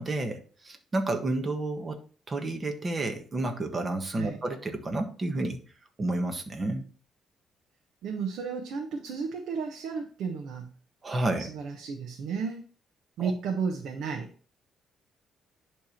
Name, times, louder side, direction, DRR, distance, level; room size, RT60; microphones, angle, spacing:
voice 1, 0.0-2.0 2.3-5.6 6.0-6.8 11.0-11.5 13.2-13.3, right 2 dB, 30° right, 5 dB, 1.5 m, -30 dB
voice 2, 8.0-10.7 11.4-12.6 13.2-14.3, right 5 dB, 80° right, 1 dB, 1.2 m, -33 dB
10.5 x 3.5 x 4.4 m, 0.40 s
cardioid pair, 90°, 0 cm